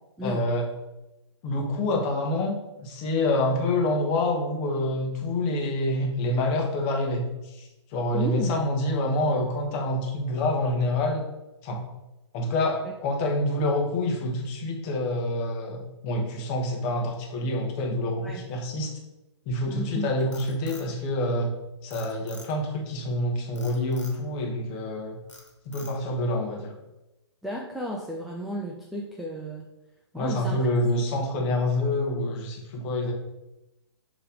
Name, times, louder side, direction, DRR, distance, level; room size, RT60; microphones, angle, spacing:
voice 1, 0.2-0.6 1.4-7.3 7.5-11.2 11.6-11.8 12.3-18.9 19.5-21.5 21.8-25.2 25.6-26.7 30.1-33.1, left 1 dB, 30° left, 1 dB, 1.2 m, -27 dB
voice 2, 8.1-8.6 18.2-18.4 19.7-20.1 27.4-29.7 30.1-30.7 31.4-31.5, equal, ahead, -1 dB, 0.3 m, -33 dB
Frog, 20.0-21.5 21.9-22.8 23.6-24.2 24.7-25.0 25.3-26.2, left 2 dB, 80° left, 1.7 m, -47 dB
6.7 x 3.2 x 5.0 m, 0.97 s
figure-of-eight pair, 120°, 15 cm